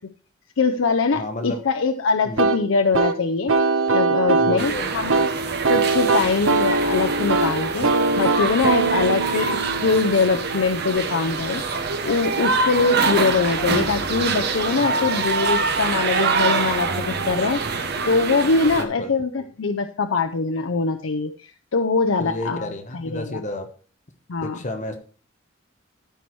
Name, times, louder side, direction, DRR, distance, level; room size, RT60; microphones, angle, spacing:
voice 1, 0.6-3.5 3.9-5.2 5.7-7.9 8.2-17.6 18.1-23.4 24.3-24.6, left 4 dB, 80° left, 7 dB, 0.6 m, -23 dB
voice 2, 1.1-1.6 2.2-2.4 4.4-4.9 14.8-15.3 18.7-19.1 22.2-23.7 24.4-25.0, left 1 dB, 40° left, 7 dB, 1.1 m, -31 dB
sound 1, 2.4-11.0, right 3 dB, 85° right, 0.9 m, -22 dB
sound 2, 4.6-18.8, right 4 dB, 55° right, 1.2 m, -25 dB
13.5 x 4.6 x 4.5 m, 0.40 s
head